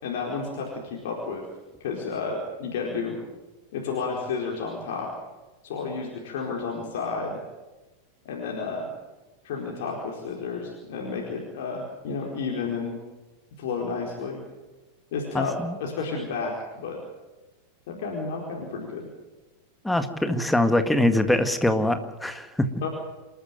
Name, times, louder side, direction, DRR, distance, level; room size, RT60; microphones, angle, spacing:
voice 1, 0.0-1.4 1.8-3.2 3.7-5.1 5.6-7.4 8.2-8.9 9.4-13.0 13.6-14.4 15.1-17.0 17.9-19.1 22.8-22.9, left 4 dB, 55° left, -1 dB, 4.6 m, -31 dB
voice 2, 15.3-15.8 19.8-22.7, left 1 dB, 5° left, 8 dB, 1.9 m, -23 dB
27.5 x 14.0 x 9.3 m, 1.1 s
figure-of-eight pair, 90°, 0 cm